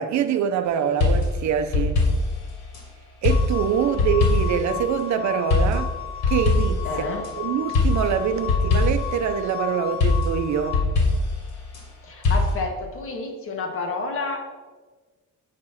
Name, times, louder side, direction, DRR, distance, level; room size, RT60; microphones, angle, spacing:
voice 1, 0.0-2.0 3.2-5.9 6.3-6.8 7.4-10.8, right 8 dB, 70° right, 0.7 m, -24 dB
sound 1, 1.0-2.8 3.2-4.7 5.5-7.3 7.7-9.2 10.0-11.8 12.2-12.6, left 3 dB, 70° left, 2.7 m, -22 dB
sound 2, 3.3-10.8, left 11 dB, 20° left, 0.3 m, -34 dB
voice 2, 6.8-7.2 12.0-14.4, left 3 dB, 45° left, 1.5 m, -29 dB
8.6 x 4.9 x 5.7 m
cardioid pair, 155°, 30 cm